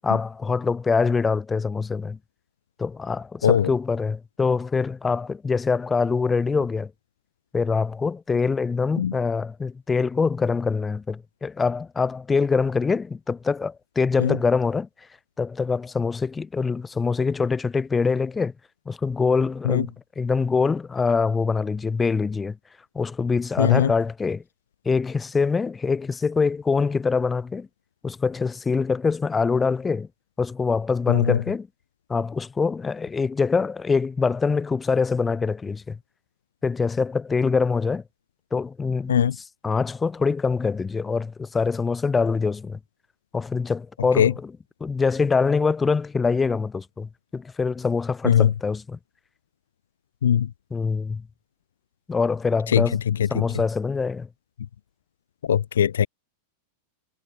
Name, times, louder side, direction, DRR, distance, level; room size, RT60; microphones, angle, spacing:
voice 1, 0.0-2.2 2.8-6.9 7.5-14.9 15.4-18.5 18.9-22.6 23.0-24.4 24.9-27.7 28.0-30.1 30.4-31.7 32.1-36.0 36.6-38.0 38.5-42.8 43.3-49.0 50.7-51.2 52.1-53.0 53.3-54.3, left 4 dB, 15° left, 1.7 m, -24 dB
voice 2, 23.6-23.9 31.1-31.4 39.1-39.3 44.2-44.3 48.3-48.5 50.2-50.5 52.7-52.8 55.5-56.1, left 9 dB, 65° left, 0.3 m, -19 dB
figure-of-eight pair, 90°, 0 cm